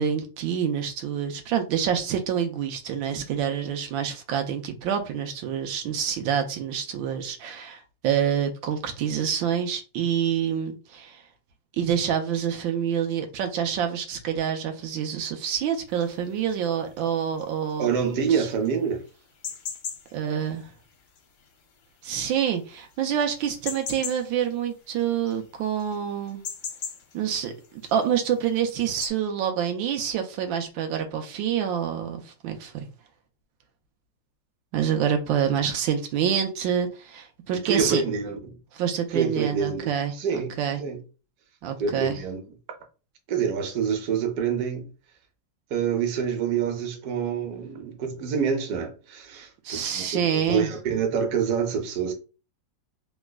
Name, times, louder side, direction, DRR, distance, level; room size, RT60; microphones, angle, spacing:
voice 1, 0.0-11.2 11.7-17.9 18.3-18.5 20.1-20.7 22.0-26.4 27.1-27.5 27.9-32.9 34.7-38.0 38.7-40.8 41.6-42.2 49.6-50.7, right 8 dB, 85° right, 1.4 m, -27 dB
sound 1, 15.9-29.1, left 6 dB, 70° left, 1.2 m, -41 dB
voice 2, 17.8-19.0 37.6-38.6 39.1-39.9 40.2-41.0 41.8-42.6 43.3-44.9 45.7-52.1, right 6 dB, 65° right, 1.1 m, -27 dB
3.4 x 3.1 x 2.2 m
omnidirectional pair, 2.1 m